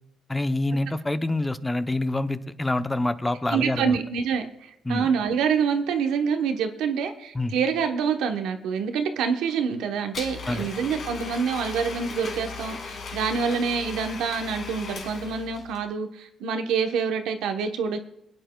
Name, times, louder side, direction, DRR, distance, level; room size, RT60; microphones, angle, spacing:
voice 1, 0.3-4.0 4.9-5.1 7.3-7.5 10.5-10.7, left 2 dB, 15° left, 10 dB, 0.6 m, -26 dB
voice 2, 3.5-18.0, right 6 dB, 90° right, 5 dB, 0.9 m, -26 dB
Domestic sounds home sounds, 10.1-15.8, left 4 dB, 65° left, 2.1 m, -37 dB
27.0 x 9.0 x 2.3 m, 0.85 s
cardioid pair, 90°, 0 cm